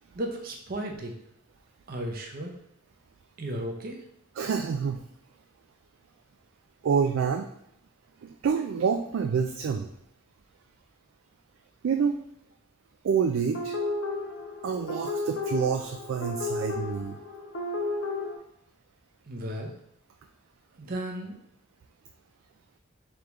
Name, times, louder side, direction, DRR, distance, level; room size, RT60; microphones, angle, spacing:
voice 1, 0.1-1.2 1.9-2.5 3.4-4.0 19.2-19.7 20.8-21.4, right 1 dB, 50° right, 2 dB, 0.7 m, -34 dB
voice 2, 4.4-5.0 6.8-7.5 8.2-9.9 11.8-12.2 13.0-13.7 14.6-17.2, right 6 dB, 90° right, 5 dB, 0.3 m, -27 dB
sound 1, 13.5-18.4, left 2 dB, 80° left, 0.8 m, -33 dB
3.6 x 3.4 x 3.0 m, 0.78 s
head